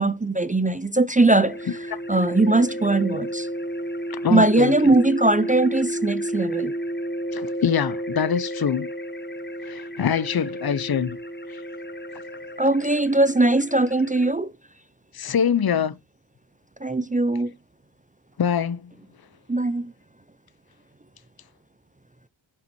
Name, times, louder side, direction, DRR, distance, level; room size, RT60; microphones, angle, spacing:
voice 1, 0.0-1.8 2.1-3.5 4.3-6.7 12.6-14.5 16.8-17.5 19.5-19.9, right 2 dB, 15° right, 0.5 m, -20 dB
sound 1, 1.3-14.3, equal, 20° left, 1.0 m, -32 dB
voice 2, 4.1-4.9 7.3-8.9 9.7-11.2 15.1-16.0 18.4-18.9, left 7 dB, 50° left, 0.7 m, -24 dB
8.1 x 5.4 x 4.5 m
wide cardioid pair, 65°, 47 cm